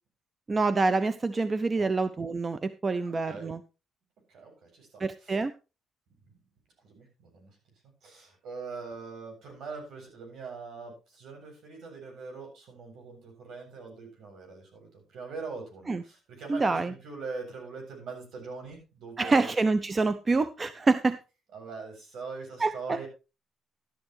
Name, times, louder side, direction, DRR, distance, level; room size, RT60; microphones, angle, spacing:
voice 1, 0.5-3.6 5.0-5.5 15.9-16.0 16.5-16.9 19.2-21.2 22.6-23.0, right 3 dB, 30° right, 13 dB, 0.8 m, -26 dB
voice 2, 3.0-3.5 4.3-5.4 6.3-6.4 6.8-7.6 8.0-19.5 21.5-23.1, right 4 dB, 75° right, 3 dB, 7.7 m, -42 dB
13.5 x 11.0 x 3.2 m, 0.30 s
cardioid pair, 90°, 0 cm